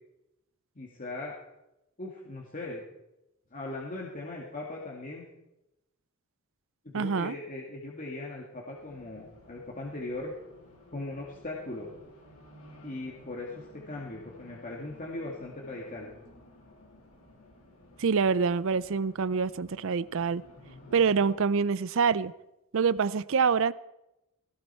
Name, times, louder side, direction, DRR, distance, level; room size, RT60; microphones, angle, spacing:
voice 1, 0.8-1.4 2.0-2.8 3.5-5.3 6.9-10.3 10.9-11.9 12.8-16.1, left 2 dB, 40° left, 2.1 m, -39 dB
voice 2, 6.9-7.4 18.0-20.4 20.9-22.3 22.7-23.7, right 5 dB, 65° right, 0.5 m, -26 dB
Race car auto racing, 8.7-21.3, left 1 dB, 80° left, 5.2 m, -54 dB
19.5 x 16.5 x 4.5 m
head